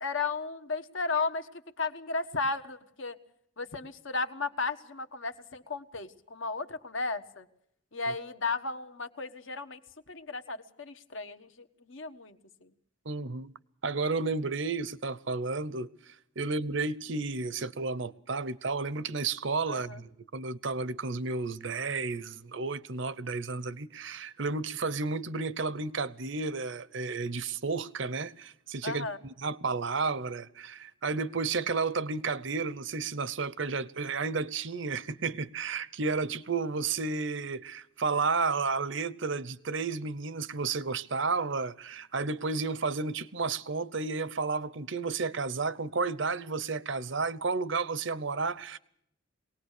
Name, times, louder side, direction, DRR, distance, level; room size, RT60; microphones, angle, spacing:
voice 1, 0.0-1.5 1.8-3.2 3.6-7.4 7.9-9.8 10.1-11.5 11.8-12.7 19.7-20.0 28.8-29.2, left 4 dB, 65° left, 1.4 m, -34 dB
voice 2, 13.1-13.5 13.8-48.8, right 4 dB, 60° right, 0.8 m, -32 dB
23.0 x 19.0 x 6.6 m
head